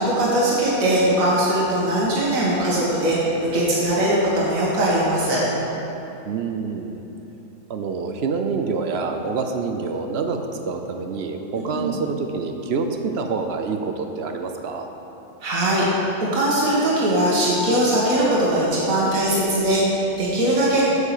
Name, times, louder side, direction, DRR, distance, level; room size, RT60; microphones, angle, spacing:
voice 1, 0.0-5.4 11.7-12.0 15.4-15.9 16.3-20.8, right 1 dB, 80° right, -7 dB, 1.9 m, -20 dB
voice 2, 6.3-7.0 7.7-14.9, right 4 dB, 60° right, 5 dB, 0.8 m, -27 dB
7.2 x 6.6 x 6.7 m, 3.0 s
omnidirectional pair, 1.4 m